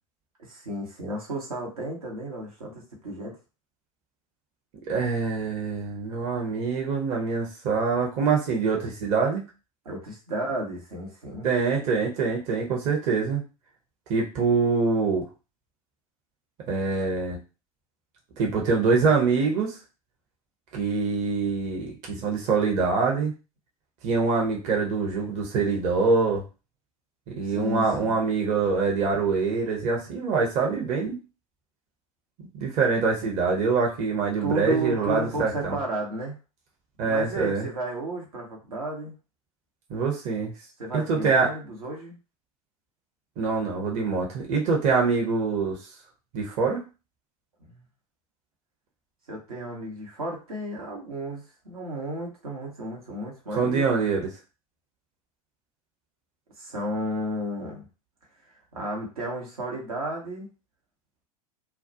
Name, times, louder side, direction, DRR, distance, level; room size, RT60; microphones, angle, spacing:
voice 1, 0.5-3.4 9.8-11.5 27.5-28.2 34.4-36.3 37.0-39.1 40.8-42.2 47.6-47.8 49.3-53.8 56.6-57.8 58.7-60.5, right 1 dB, 75° right, -2 dB, 0.9 m, -33 dB
voice 2, 4.9-9.4 11.4-13.4 14.1-15.2 16.7-17.4 18.4-19.8 20.7-23.3 24.0-26.4 27.3-31.2 32.5-35.8 37.0-37.7 39.9-40.5 40.9-41.5 43.4-45.8 46.3-46.8 53.6-54.3, right 4 dB, 40° right, -1 dB, 0.7 m, -24 dB
2.2 x 2.1 x 2.7 m, 0.31 s
figure-of-eight pair, 85°, 19 cm